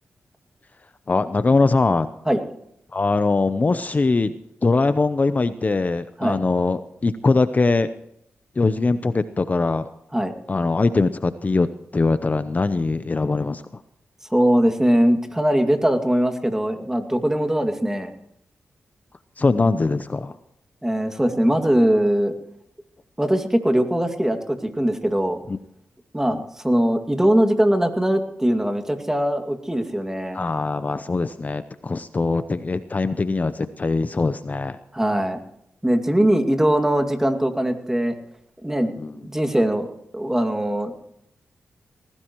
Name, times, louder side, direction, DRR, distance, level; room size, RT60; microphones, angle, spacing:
voice 1, 1.1-2.1 2.9-4.3 4.6-7.9 8.6-9.9 10.5-13.6 19.4-20.4 25.5-25.6 26.2-26.4 30.3-34.8 39.0-39.3, left 3 dB, 35° left, 12 dB, 0.7 m, -22 dB
voice 2, 14.3-18.1 20.8-22.3 23.2-25.4 26.1-26.4 26.6-30.4 34.9-35.4 35.8-38.2 38.6-38.9 39.2-41.0, right 1 dB, 10° right, 5 dB, 2.3 m, -21 dB
19.5 x 17.0 x 3.1 m, 0.77 s
cardioid pair, 70°, 5 cm